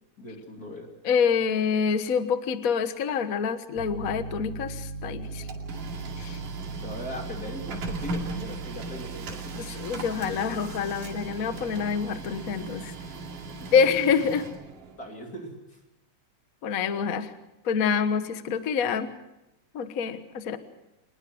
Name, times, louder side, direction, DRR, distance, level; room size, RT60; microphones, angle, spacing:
voice 1, 0.2-0.9 6.8-9.7 13.6-13.7 15.0-15.5, left 1 dB, 30° left, 1 dB, 3.4 m, -39 dB
voice 2, 1.0-5.4 6.2-6.4 9.6-12.9 13.7-14.5 16.6-17.3 17.6-19.1 19.7-20.6, left 6 dB, 80° left, 10 dB, 0.7 m, -26 dB
Piano, 3.8-14.0, right 5 dB, 45° left, 6.0 m, -40 dB
Printer, 5.2-15.0, right 2 dB, 90° right, 4.0 m, -38 dB
25.0 x 20.5 x 6.3 m, 0.92 s
omnidirectional pair, 3.7 m